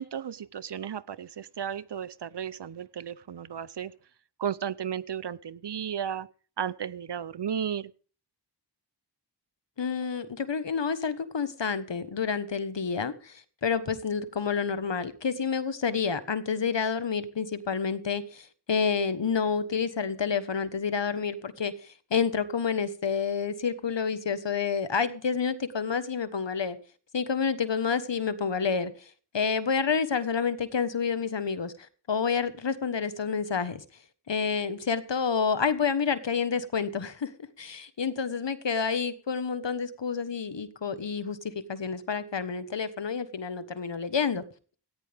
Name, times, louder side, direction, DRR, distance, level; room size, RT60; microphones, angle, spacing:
voice 1, 0.0-4.0 4.4-6.3 6.6-7.9, right 8 dB, 70° right, 0.7 m, -34 dB
voice 2, 9.8-21.7 22.1-26.8 27.1-28.9 29.3-31.7 32.1-33.8 34.3-37.3 37.6-44.4, left 6 dB, 85° left, 1.4 m, -29 dB
18.0 x 14.5 x 3.5 m
wide cardioid pair, 55°, 43 cm